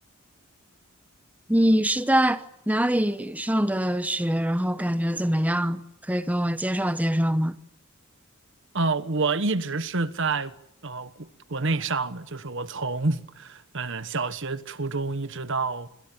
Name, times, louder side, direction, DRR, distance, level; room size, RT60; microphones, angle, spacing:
voice 1, 1.5-7.5, equal, 5° right, 1.0 m, -24 dB
voice 2, 8.7-10.5 10.8-15.9, right 3 dB, 55° right, 1.3 m, -28 dB
28.0 x 22.5 x 9.0 m
head